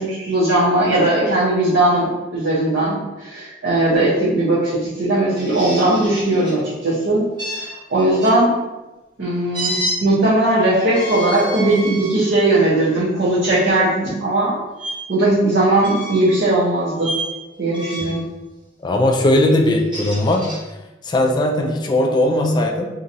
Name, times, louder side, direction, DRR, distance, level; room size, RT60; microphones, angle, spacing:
voice 1, 0.0-7.2 7.5-8.5 9.2-14.5 15.1-17.1 17.6-18.2, right 1 dB, 65° right, -10 dB, 0.8 m, -18 dB
sound 1, 5.3-6.6 7.4-8.3 9.5-10.0 10.8-12.2 12.8-13.0 14.8-14.9 15.8-16.4 17.0-17.3 17.7-18.2 19.6-20.6, equal, 25° right, 0.8 m, -29 dB
voice 2, 18.8-20.5 21.0-22.9, left 1 dB, 25° left, 2 dB, 0.3 m, -18 dB
2.8 x 2.6 x 2.6 m, 1.0 s
head